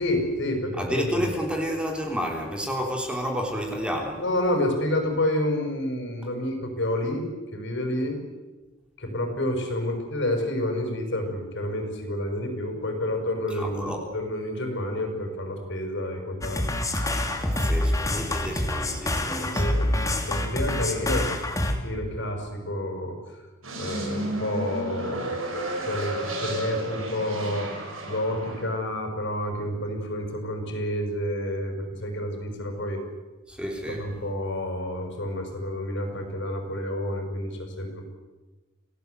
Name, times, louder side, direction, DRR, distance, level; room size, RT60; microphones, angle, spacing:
voice 1, 0.0-1.2 4.2-7.2 7.5-8.2 9.0-16.7 19.4-21.3 21.8-23.2 23.8-25.4 25.8-27.7 28.1-33.0 34.0-38.1, left 1 dB, 60° left, 4 dB, 6.2 m, -29 dB
voice 2, 0.8-4.2 13.5-14.0 17.3-19.8 33.5-34.1, equal, 5° right, 1 dB, 3.4 m, -30 dB
sound 1, 16.4-21.8, left 1 dB, 15° left, 2.7 m, -26 dB
sound 2, 23.6-28.6, right 1 dB, 80° right, 7.3 m, -32 dB
28.5 x 18.0 x 8.2 m, 1.2 s
head